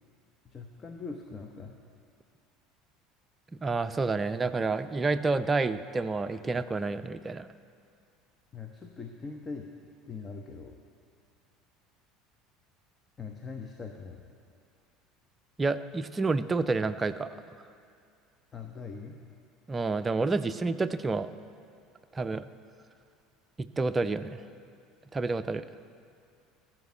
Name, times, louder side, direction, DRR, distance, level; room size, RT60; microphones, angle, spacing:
voice 1, 0.4-1.8 8.5-9.7 10.1-10.8 13.2-14.3 18.5-19.2, left 4 dB, 30° left, 4 dB, 0.9 m, -41 dB
voice 2, 3.6-7.5 15.6-17.3 19.7-21.3 22.1-22.5 23.8-24.4 25.1-25.6, right 3 dB, 20° right, 10 dB, 0.5 m, -29 dB
14.0 x 6.1 x 9.0 m, 2.4 s
figure-of-eight pair, 65°, 0 cm